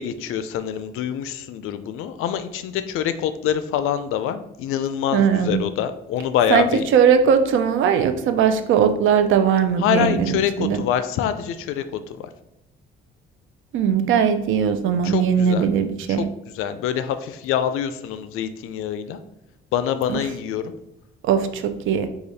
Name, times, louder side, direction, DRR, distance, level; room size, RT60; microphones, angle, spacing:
voice 1, 0.0-6.9 9.8-12.3 15.0-15.7 16.1-16.3 16.5-19.2 19.7-20.7, left 9 dB, 85° left, 11 dB, 0.4 m, -25 dB
voice 2, 5.1-5.6 6.5-6.7 6.9-10.8 13.7-16.2 20.1-20.2 21.2-22.1, right 7 dB, 70° right, 9 dB, 0.5 m, -19 dB
4.9 x 2.4 x 4.0 m, 0.86 s
cardioid pair, 145°, 21 cm